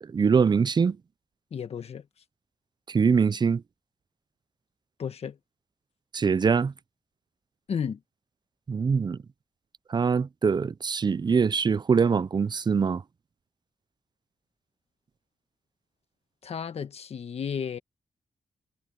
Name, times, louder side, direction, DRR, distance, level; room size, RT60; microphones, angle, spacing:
voice 1, 0.0-1.0 2.9-3.6 6.1-6.7 8.7-9.2 9.9-13.0, right 5 dB, 40° right, 0.5 m, -23 dB
voice 2, 1.5-2.0 5.0-5.4 7.7-8.0 16.4-17.8, left 7 dB, 70° left, 1.5 m, -33 dB
cardioid pair, 65°, 11 cm